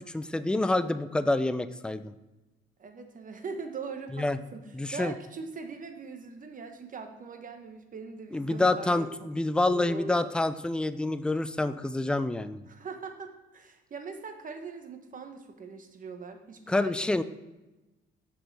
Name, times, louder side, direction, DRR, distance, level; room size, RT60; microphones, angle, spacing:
voice 1, 0.0-2.1 4.1-4.4 4.7-5.1 8.3-12.7 16.7-17.2, left 2 dB, 5° left, 13 dB, 0.3 m, -27 dB
voice 2, 2.8-9.3 9.6-10.3 12.7-17.2, right 4 dB, 40° right, 6 dB, 1.1 m, -41 dB
6.2 x 5.2 x 4.7 m, 1.1 s
cardioid pair, 90°, 20 cm